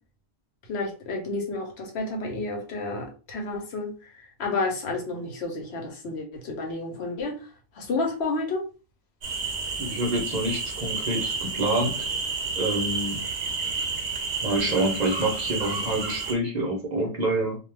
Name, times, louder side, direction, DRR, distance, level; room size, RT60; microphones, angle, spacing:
voice 1, 0.7-3.9 4.4-7.4 7.8-8.6, left 3 dB, 80° left, 2 dB, 1.0 m, -30 dB
sound 1, 9.2-16.3, right 4 dB, 70° right, 0.9 m, -30 dB
voice 2, 9.8-12.1 12.6-13.2 14.4-17.6, right 1 dB, 45° right, 1 dB, 0.8 m, -27 dB
2.3 x 2.2 x 3.2 m, 0.34 s
omnidirectional pair, 1.1 m